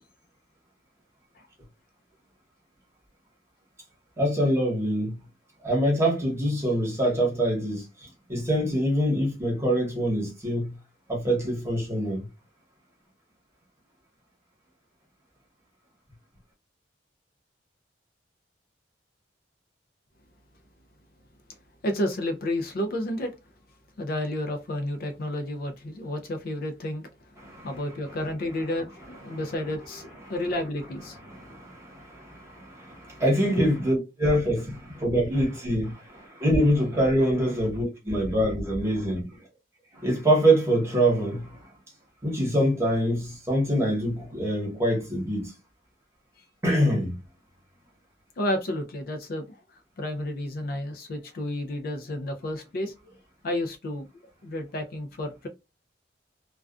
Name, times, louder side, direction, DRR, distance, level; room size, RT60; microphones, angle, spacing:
voice 1, 4.2-5.2 5.6-10.7 11.1-12.3 27.4-27.7 29.3-29.4 30.2-30.3 31.3-39.4 39.9-41.7 42.2-45.5 46.6-47.2, equal, 15° right, 1.0 m, -25 dB
voice 2, 21.8-23.3 24.0-31.6 33.6-33.7 48.4-52.9 53.4-54.1 54.4-55.5, left 1 dB, 50° left, 0.4 m, -31 dB
2.3 x 2.2 x 2.4 m
head